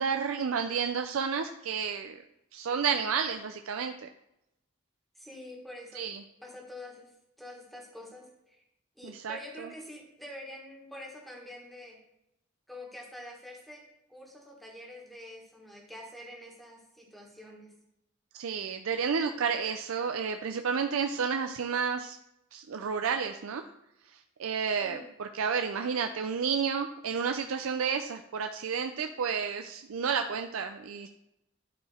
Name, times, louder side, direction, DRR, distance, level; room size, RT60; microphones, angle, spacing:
voice 1, 0.0-2.2 2.5-4.1 5.9-6.2 9.0-9.7 18.4-22.2 22.5-23.6 24.4-31.1, right 6 dB, 75° right, 6 dB, 0.5 m, -31 dB
voice 2, 5.1-6.1 6.4-7.1 7.4-8.6 9.0-12.0 12.7-13.8 14.1-17.7 24.8-25.1, left 1 dB, ahead, -1 dB, 1.6 m, -46 dB
11.5 x 4.8 x 4.3 m, 0.84 s
head